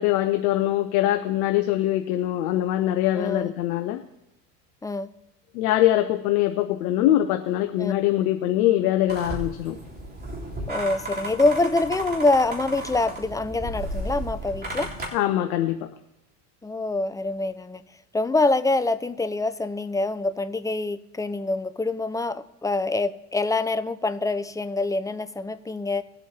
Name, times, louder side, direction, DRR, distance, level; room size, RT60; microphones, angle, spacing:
voice 1, 0.0-4.0 5.5-9.8 15.1-15.9, left 13 dB, 70° left, 0.9 m, -23 dB
voice 2, 3.1-3.5 4.8-5.1 7.8-7.9 10.7-14.9 16.6-17.8 18.1-26.0, left 2 dB, 5° left, 0.6 m, -25 dB
sound 1, 9.1-15.1, right 1 dB, 20° right, 3.7 m, -34 dB
20.5 x 8.1 x 2.9 m
hypercardioid pair, 80°, 46 cm